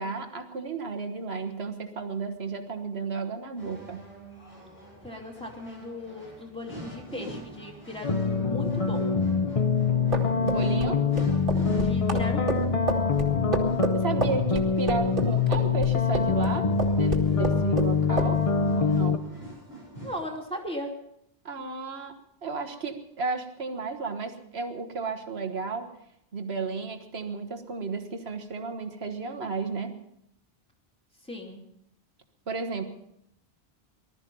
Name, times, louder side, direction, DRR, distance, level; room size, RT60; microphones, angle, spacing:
voice 1, 0.0-4.0 10.4-11.0 13.9-16.6 17.0-18.4 18.8-19.2 21.5-22.1 22.4-25.9 26.3-30.0 32.5-32.8, right 4 dB, 75° right, 6 dB, 1.7 m, -33 dB
sound 1, 3.6-20.2, right 1 dB, 70° left, 7.2 m, -45 dB
voice 2, 5.0-9.1 11.7-12.8 20.0-21.0 31.2-31.7, left 1 dB, 5° left, -1 dB, 2.7 m, -37 dB
sound 2, 8.0-19.2, left 5 dB, 35° left, 0.9 m, -24 dB
sound 3, 9.9-16.5 16.8-17.9 18.2-18.4, right 3 dB, 55° right, 2.1 m, -30 dB
19.5 x 13.0 x 5.4 m, 0.77 s
omnidirectional pair, 1.1 m